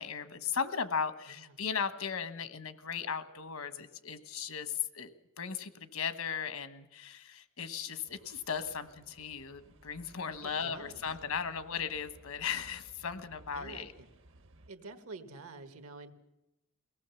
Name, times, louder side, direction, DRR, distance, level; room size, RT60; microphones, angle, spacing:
voice 1, 0.0-5.1 5.4-13.9, left 6 dB, 80° left, 11 dB, 1.2 m, -37 dB
sound 1, 8.1-14.7, right 1 dB, 60° right, 1.0 m, -58 dB
voice 2, 10.4-11.0 13.5-14.1 14.7-16.1, right 3 dB, 80° right, 8 dB, 1.6 m, -48 dB
23.0 x 18.0 x 7.0 m, 0.94 s
head